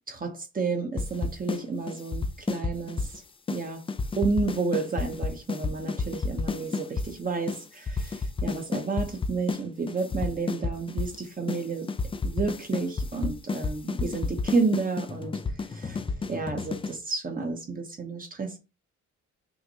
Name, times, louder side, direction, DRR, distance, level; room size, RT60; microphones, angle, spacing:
voice 1, 0.1-3.2 3.5-3.8 4.2-11.9 12.2-15.4 15.7-16.0 16.3-18.6, right 4 dB, 30° right, 0.9 m, -31 dB
sound 1, 1.0-1.6 1.9-3.2 3.5-3.6 3.9-7.1 7.5-7.6 7.9-9.6 9.9-11.2 11.5-11.6 11.9-17.0, left 4 dB, 20° left, 0.3 m, -30 dB
5.6 x 2.2 x 2.8 m
cardioid pair, 90°, 30 cm